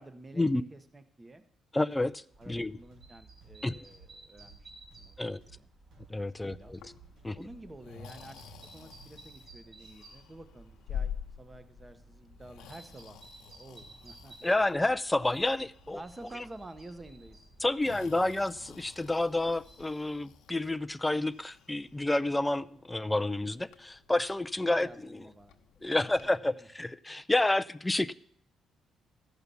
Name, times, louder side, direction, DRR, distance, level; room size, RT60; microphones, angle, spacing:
voice 1, 0.0-1.4 2.4-4.7 5.0-5.7 6.4-6.7 7.3-14.5 15.9-17.4 24.6-25.6 25.8-26.3 26.6-26.7, right 2 dB, 20° right, 1.1 m, -50 dB
voice 2, 1.7-2.8 3.6-3.7 5.2-5.4 6.1-6.8 7.2-7.4 14.4-16.0 17.6-24.9 25.8-28.1, left 2 dB, 10° left, 0.4 m, -29 dB
sound 1, 1.9-9.8, right 6 dB, 80° right, 2.5 m, -58 dB
sound 2, 2.3-19.8, right 2 dB, 50° right, 4.2 m, -56 dB
Breathing, 6.6-26.3, left 8 dB, 90° left, 0.9 m, -48 dB
14.0 x 5.8 x 6.9 m
cardioid pair, 90°, 0 cm